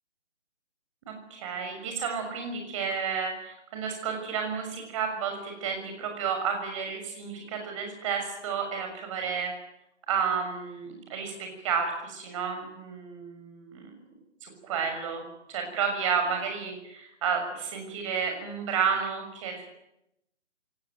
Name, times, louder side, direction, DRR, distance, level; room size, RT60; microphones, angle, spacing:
voice 1, 1.0-9.5 10.1-13.9 14.4-15.2 15.5-19.6, right 6 dB, 25° right, 4 dB, 6.5 m, -31 dB
23.0 x 18.5 x 9.4 m, 0.85 s
figure-of-eight pair, 155°, 35 cm